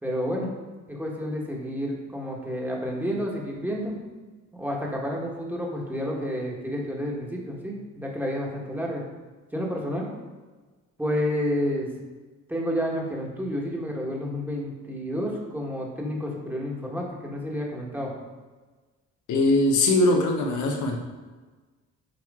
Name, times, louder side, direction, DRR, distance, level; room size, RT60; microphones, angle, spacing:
voice 1, 0.0-0.5 0.9-4.0 4.5-9.0 9.5-10.1 11.0-11.9 12.5-18.1, equal, 5° right, -2 dB, 1.4 m, -30 dB
voice 2, 19.3-21.0, left 2 dB, 80° left, 2 dB, 0.9 m, -21 dB
9.0 x 3.0 x 3.6 m, 1.3 s
cardioid pair, 90°, 30 cm